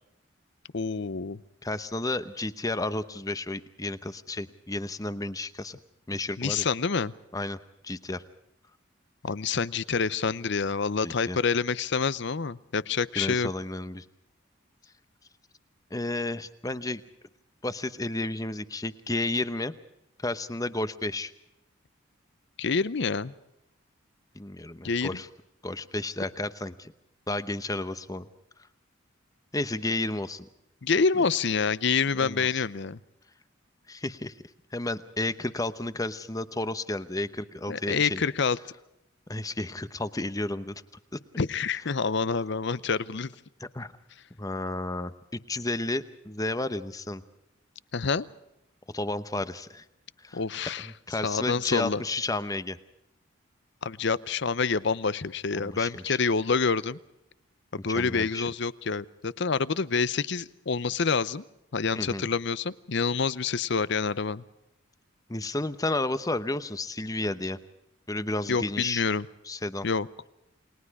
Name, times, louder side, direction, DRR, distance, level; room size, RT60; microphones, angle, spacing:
voice 1, 0.7-1.4 6.4-7.1 9.2-13.5 22.6-23.3 24.8-25.2 30.8-33.0 37.7-38.6 41.4-43.3 47.9-48.2 50.3-50.9 51.2-52.0 53.8-57.0 57.7-61.4 61.7-64.4 68.5-69.3 69.8-70.1, left 5 dB, 60° left, 18 dB, 0.7 m, -27 dB
voice 2, 1.6-5.8 6.1-6.7 7.3-7.6 7.8-8.2 11.0-11.4 13.1-14.0 15.9-17.0 17.6-19.7 20.2-21.3 24.3-25.3 25.6-26.9 27.3-28.3 29.5-30.5 31.1-31.2 32.1-32.6 33.9-34.3 34.7-38.2 39.3-40.8 41.1-41.2 43.6-43.9 44.4-47.2 48.9-49.8 50.2-52.8 55.5-56.2 57.8-58.5 62.0-62.3 65.3-67.6 68.1-69.0 69.4-69.9, left 2 dB, 15° left, 13 dB, 0.9 m, -32 dB
29.5 x 20.5 x 4.8 m, 0.84 s
head